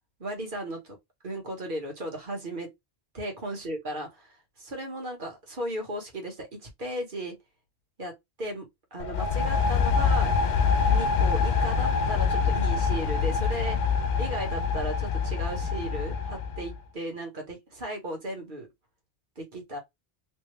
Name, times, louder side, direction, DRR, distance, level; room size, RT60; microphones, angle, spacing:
voice 1, 0.2-1.0 1.2-2.7 3.1-7.4 8.0-8.1 8.4-8.7 8.9-10.3 10.8-13.8 14.2-18.7 19.4-19.8, right 1 dB, 55° right, 1.5 m, -35 dB
sound 1, 9.0-16.8, left 5 dB, 55° left, 0.6 m, -25 dB
3.4 x 2.6 x 3.2 m
omnidirectional pair, 1.0 m